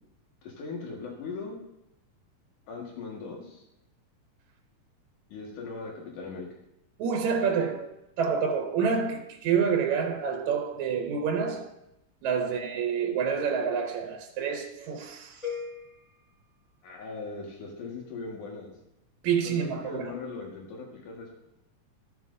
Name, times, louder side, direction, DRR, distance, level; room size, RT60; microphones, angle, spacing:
voice 1, 0.4-1.6 2.7-3.6 5.3-6.5 12.3-12.5 16.8-18.7 19.4-21.4, left 4 dB, 85° left, 3.2 m, -39 dB
voice 2, 7.0-11.7 12.2-15.5 19.2-20.2, right 6 dB, 75° right, 2.0 m, -28 dB
sound 1, 15.4-17.5, left 7 dB, 10° left, 3.0 m, -41 dB
13.5 x 7.4 x 2.6 m
omnidirectional pair, 3.5 m